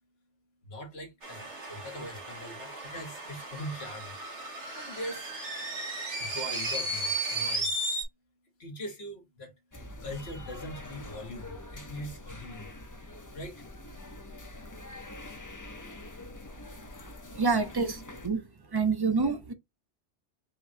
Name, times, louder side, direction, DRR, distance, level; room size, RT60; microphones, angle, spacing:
voice 1, 0.6-4.1 4.5-5.3 6.2-7.8 8.6-9.5 10.0-12.8 13.3-13.6 18.6-18.8, equal, 65° left, 1.6 m, -41 dB
sound 1, 1.2-8.0, right 1 dB, 80° right, 2.2 m, -35 dB
sound 2, 9.7-18.3, left 1 dB, 20° left, 0.7 m, -45 dB
voice 2, 17.3-18.4 18.7-19.5, right 4 dB, 25° right, 0.6 m, -27 dB
5.0 x 3.1 x 2.6 m
omnidirectional pair, 1.2 m